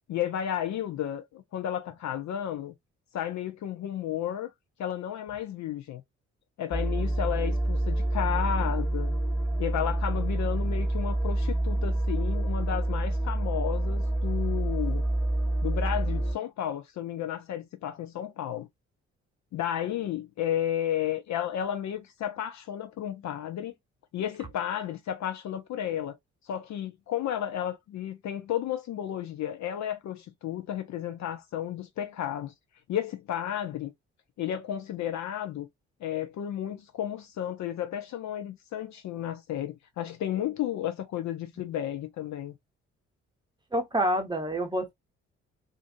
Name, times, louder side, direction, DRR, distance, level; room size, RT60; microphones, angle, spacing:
voice 1, 0.1-2.8 3.1-4.5 4.8-6.0 6.6-9.1 9.6-15.0 15.6-18.7 19.5-23.7 24.1-26.2 26.5-32.5 32.9-33.9 34.4-35.7 36.0-42.6, left 10 dB, 50° left, 0.7 m, -32 dB
sound 1, 6.7-16.3, right 1 dB, 10° left, 1.2 m, -27 dB
voice 2, 43.7-44.9, equal, 10° right, 0.9 m, -27 dB
2.6 x 2.4 x 2.6 m
figure-of-eight pair, 40°, 36 cm